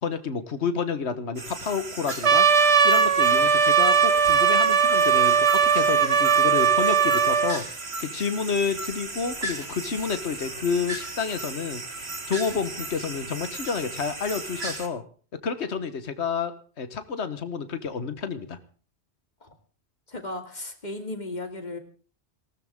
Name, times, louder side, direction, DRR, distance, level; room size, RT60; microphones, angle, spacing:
voice 1, 0.0-2.5 2.8-7.6 8.0-15.0 15.4-16.5 16.8-18.6, left 5 dB, 80° left, 10 dB, 1.6 m, -29 dB
sound 1, 1.4-14.9, right 2 dB, 65° right, 2.8 m, -36 dB
Trumpet, 2.2-7.6, right 6 dB, 85° right, 1.6 m, -19 dB
voice 2, 20.1-21.8, left 2 dB, 40° left, 5 dB, 2.8 m, -35 dB
19.5 x 17.5 x 3.7 m, 0.41 s
omnidirectional pair, 1.1 m